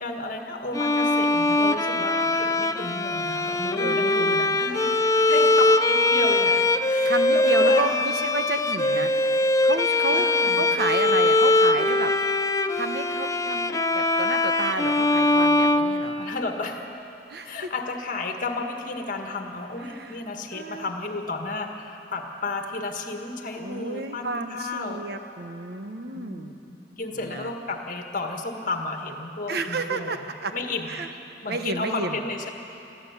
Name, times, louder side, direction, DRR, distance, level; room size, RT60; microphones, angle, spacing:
voice 1, 0.0-5.0 5.2-8.1 10.1-10.6 16.2-16.9 17.4-25.1 26.1-31.1 31.4-32.5, left 3 dB, 45° left, 4 dB, 1.7 m, -33 dB
Bowed string instrument, 0.7-16.6, left 2 dB, 15° left, 0.5 m, -22 dB
voice 2, 3.8-4.4 7.0-9.1 9.6-10.3 10.6-12.1 12.8-16.2 17.3-17.5 19.9-20.2 20.5-20.9 23.6-26.6 27.1-27.5 29.5-30.5 30.9-31.1 31.5-32.1, right 3 dB, 60° right, 7 dB, 1.1 m, -31 dB
22.5 x 15.0 x 8.3 m, 2.9 s
head